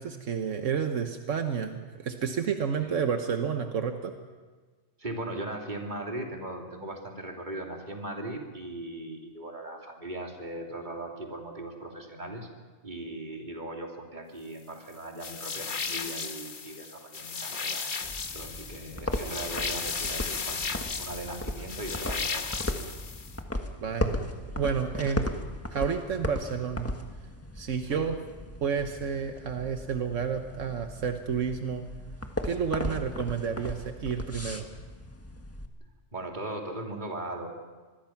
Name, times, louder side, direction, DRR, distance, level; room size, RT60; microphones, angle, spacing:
voice 1, 0.0-4.1 23.8-24.3 24.6-25.3 25.7-26.9 27.5-28.2 28.6-31.8 32.4-34.7, right 6 dB, 80° right, 6 dB, 1.5 m, -30 dB
voice 2, 5.0-12.5 12.8-17.9 18.3-22.8 27.8-28.0 32.8-33.0 36.1-37.5, right 1 dB, 35° right, 1 dB, 3.1 m, -39 dB
sound 1, 15.2-23.4, left 5 dB, 45° left, 1.2 m, -35 dB
sound 2, 18.0-35.7, left 1 dB, 10° left, 1.5 m, -37 dB
25.5 x 21.0 x 5.9 m, 1.4 s
omnidirectional pair, 1.3 m